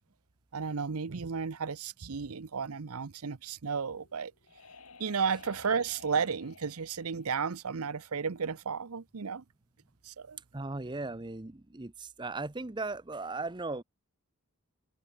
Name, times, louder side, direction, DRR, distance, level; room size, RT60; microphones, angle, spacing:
voice 1, 0.5-4.3 5.0-9.4 10.0-10.4, right 6 dB, 80° right, 0.7 m, -33 dB
sound 1, 3.9-8.5, left 4 dB, 75° left, 3.8 m, -54 dB
voice 2, 10.5-11.9 12.2-13.8, right 3 dB, 20° right, 0.7 m, -37 dB
open air
head